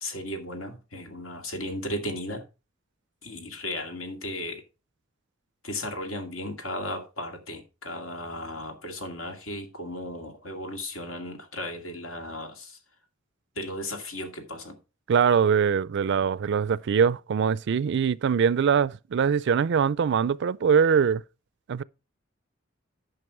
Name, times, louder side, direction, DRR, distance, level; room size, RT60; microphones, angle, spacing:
voice 1, 0.0-2.4 3.2-4.6 5.6-12.8 13.6-14.8, left 1 dB, 80° left, 2.3 m, -35 dB
voice 2, 15.1-21.2 21.7-21.8, right 7 dB, 60° right, 0.4 m, -22 dB
11.0 x 5.9 x 4.7 m
head